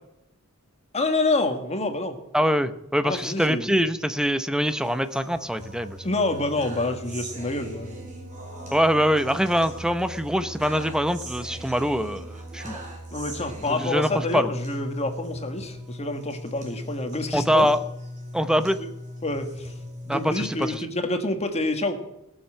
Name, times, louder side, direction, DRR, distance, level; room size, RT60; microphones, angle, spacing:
voice 1, 0.9-2.2 3.0-3.7 6.0-8.1 13.1-17.7 18.5-18.9 19.2-19.7 20.0-22.0, left 2 dB, 30° left, 6 dB, 1.6 m, -27 dB
voice 2, 2.3-6.0 8.7-12.8 13.8-14.5 17.3-17.8 18.3-18.8 20.1-20.8, equal, 5° right, 11 dB, 0.7 m, -24 dB
sound 1, 4.7-20.7, equal, 35° right, 4.5 m, -38 dB
18.5 x 7.3 x 7.6 m, 0.89 s
head